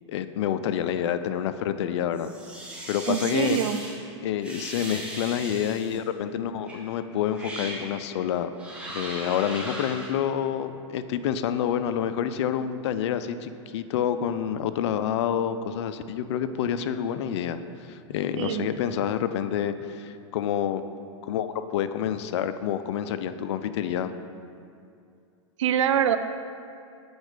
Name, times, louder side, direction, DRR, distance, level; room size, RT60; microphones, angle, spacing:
voice 1, 0.1-2.3 2.9-3.6 4.2-8.5 8.9-17.6 17.9-20.8 21.2-24.2, left 9 dB, 65° left, 11 dB, 0.5 m, -28 dB
sound 1, 2.1-3.9 4.4-6.0 6.7-6.8 7.3-7.9 8.6-10.1, right 1 dB, 5° right, 1.3 m, -38 dB
voice 2, 3.1-3.8 18.3-18.7 25.6-26.2, right 9 dB, 80° right, 11 dB, 0.5 m, -24 dB
8.0 x 4.4 x 4.9 m, 2.5 s
hypercardioid pair, 120°, 16 cm